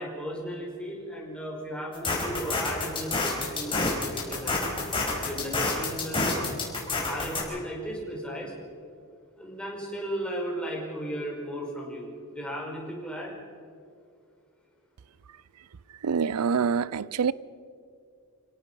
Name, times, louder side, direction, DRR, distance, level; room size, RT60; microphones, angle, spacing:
voice 1, 0.0-4.7 5.2-6.3 7.1-8.5 9.4-13.3, equal, 5° left, 5.1 m, -35 dB
sound 1, 1.9-7.4, left 3 dB, 25° left, 5.2 m, -28 dB
voice 2, 16.0-17.3, right 6 dB, 90° right, 0.5 m, -25 dB
29.0 x 17.0 x 5.5 m
head